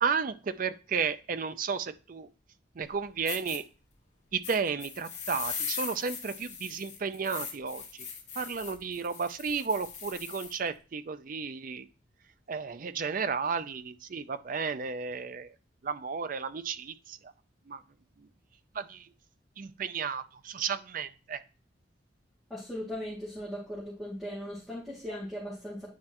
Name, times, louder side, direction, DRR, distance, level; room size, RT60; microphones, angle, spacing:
voice 1, 0.0-2.3 2.8-3.6 4.3-8.1 8.4-11.9 12.5-15.5 15.8-17.3 17.7-17.8 18.7-19.1 19.6-21.4, right 5 dB, 45° right, 12 dB, 0.4 m, -33 dB
sound 1, 2.9-3.0 3.3-3.6 4.4-10.6, left 6 dB, 35° left, 1.8 m, -40 dB
voice 2, 22.5-25.9, equal, ahead, -9 dB, 2.3 m, -38 dB
9.7 x 4.3 x 2.9 m, 0.34 s
head